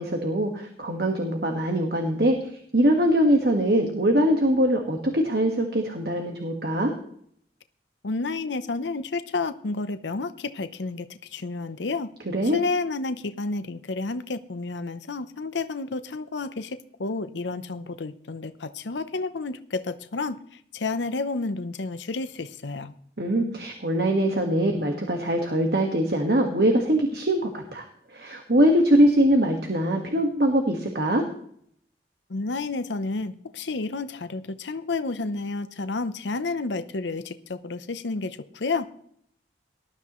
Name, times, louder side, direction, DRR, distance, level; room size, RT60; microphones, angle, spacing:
voice 1, 0.0-6.9 12.3-12.6 23.2-27.9 28.1-31.2, right 1 dB, 60° right, 3 dB, 1.6 m, -22 dB
voice 2, 8.0-12.1 12.5-22.9 32.3-38.9, left 3 dB, 85° left, 11 dB, 0.8 m, -30 dB
19.0 x 12.5 x 3.1 m, 0.64 s
head